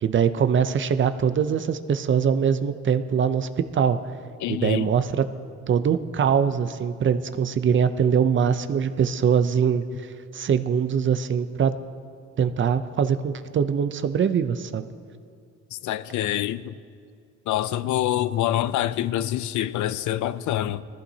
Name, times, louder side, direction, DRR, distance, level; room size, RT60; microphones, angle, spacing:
voice 1, 0.0-4.0 4.5-5.3 5.7-11.8 12.4-14.9, right 7 dB, 40° right, 0.6 m, -23 dB
voice 2, 4.4-4.9 15.7-16.7 17.5-20.8, left 12 dB, 75° left, 0.5 m, -26 dB
19.5 x 14.5 x 2.8 m
cardioid pair, 90°, 30 cm